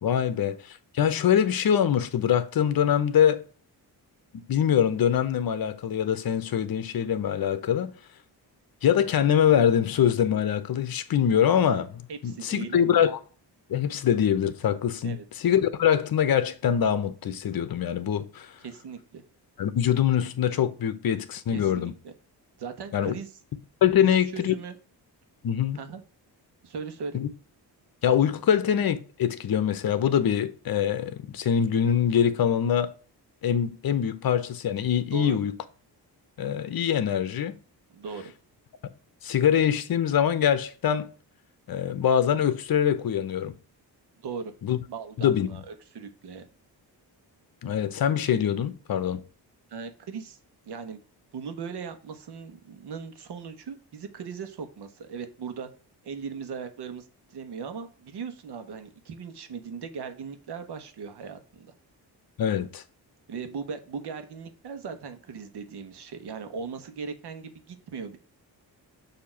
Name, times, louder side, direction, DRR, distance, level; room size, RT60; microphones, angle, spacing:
voice 1, 0.0-3.4 4.5-7.9 8.8-13.2 13.7-18.5 19.6-21.9 22.9-23.1 23.8-24.5 25.4-25.8 27.1-27.3 28.0-32.9 33.4-35.5 36.4-37.6 39.2-41.1 41.7-43.5 44.6-44.8 45.2-45.6 47.6-49.2 62.4-62.8, left 9 dB, 60° left, 0.9 m, -24 dB
voice 2, 12.1-13.0 15.0-15.2 18.6-19.2 21.5-22.1 22.6-23.3 24.0-24.8 25.7-26.0 26.6-27.2 35.1-35.4 37.9-38.3 44.2-44.5 44.9-46.4 49.7-50.4 50.7-51.0 51.3-55.7 56.0-61.7 63.3-68.2, right 5 dB, 75° right, 1.2 m, -38 dB
6.7 x 2.9 x 5.7 m
cardioid pair, 95°, 40 cm